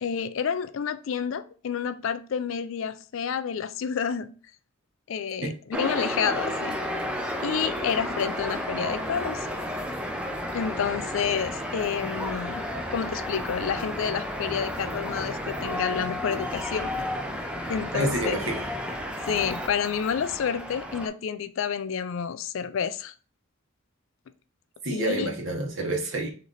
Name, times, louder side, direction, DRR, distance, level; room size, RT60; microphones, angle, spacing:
voice 1, 0.0-4.3 5.1-6.8 7.4-9.5 10.5-12.6 12.9-17.1 17.7-18.4 19.3-23.1 24.9-25.3, left 7 dB, 65° left, 0.4 m, -29 dB
sound 1, 5.7-21.1, equal, 5° right, 0.5 m, -32 dB
voice 2, 17.9-18.6 24.8-26.3, right 1 dB, 60° right, 1.1 m, -28 dB
3.9 x 3.3 x 3.8 m
head